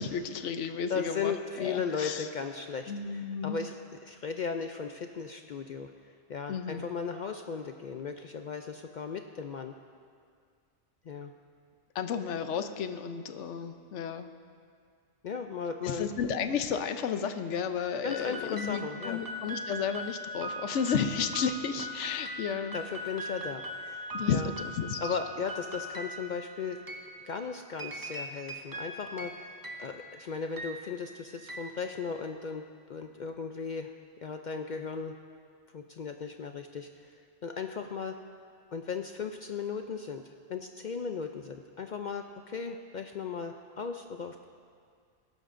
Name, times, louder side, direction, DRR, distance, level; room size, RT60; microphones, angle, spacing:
voice 1, 0.0-2.3 2.9-3.6 6.5-6.8 11.9-14.3 15.8-22.8 24.1-25.2, left 6 dB, 75° left, 9 dB, 1.0 m, -32 dB
voice 2, 0.9-3.7 4.0-9.7 11.1-11.3 15.2-16.1 18.0-19.2 22.7-24.5 25.0-26.8 27.2-32.6 32.9-33.9 34.2-35.1 35.7-38.1 38.7-44.5, left 6 dB, 60° left, 5 dB, 0.5 m, -36 dB
sound 1, 18.1-32.6, equal, 20° right, 0.7 m, -41 dB
19.5 x 11.5 x 2.6 m, 2.2 s
omnidirectional pair, 1.2 m